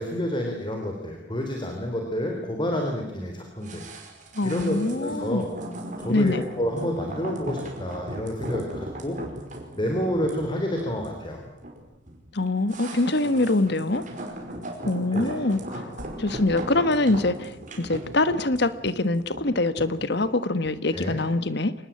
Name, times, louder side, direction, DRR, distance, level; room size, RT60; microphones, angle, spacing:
voice 1, 0.0-3.8 4.4-5.5 6.0-9.2 9.8-11.4 15.1-15.3 20.9-21.2, equal, 25° left, 2 dB, 3.7 m, -29 dB
sound 1, 3.6-20.9 21.2-21.3, right 1 dB, 45° right, 5.4 m, -37 dB
voice 2, 4.3-5.4 6.1-6.4 12.3-14.0 14.8-21.7, left 2 dB, 60° left, 14 dB, 1.5 m, -24 dB
25.5 x 20.0 x 8.8 m, 0.97 s
head